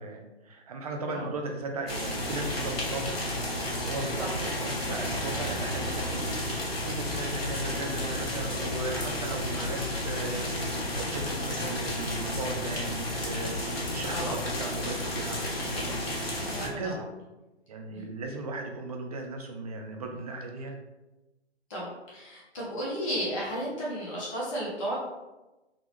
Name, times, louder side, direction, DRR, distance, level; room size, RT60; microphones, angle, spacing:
voice 1, 0.0-3.2 3.8-16.0 16.6-17.1 17.7-20.8, right 3 dB, 35° right, 2 dB, 0.5 m, -37 dB
sound 1, 1.9-16.7, left 1 dB, 60° left, 1.3 m, -32 dB
voice 2, 14.0-14.4 16.4-17.0 17.9-18.1 21.7-25.0, equal, 30° left, -6 dB, 1.0 m, -34 dB
3.7 x 2.3 x 3.3 m, 1.0 s
figure-of-eight pair, 135°, 34 cm